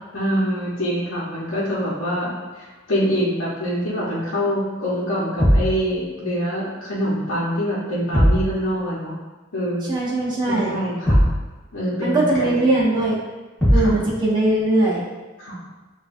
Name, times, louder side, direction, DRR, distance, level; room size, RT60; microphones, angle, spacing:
voice 1, 0.1-9.1 9.5-10.0 10.5-11.2 11.7-12.7 13.7-13.9 15.4-15.6, equal, 80° left, -10 dB, 1.0 m, -25 dB
sound 1, 5.4-5.8 8.1-8.5 11.1-11.4 13.6-14.0, equal, 10° left, 1.4 m, -17 dB
voice 2, 9.9-10.8 12.0-13.2 13.7-15.1, right 2 dB, 20° right, -6 dB, 1.0 m, -20 dB
6.7 x 2.6 x 2.6 m, 1.2 s
head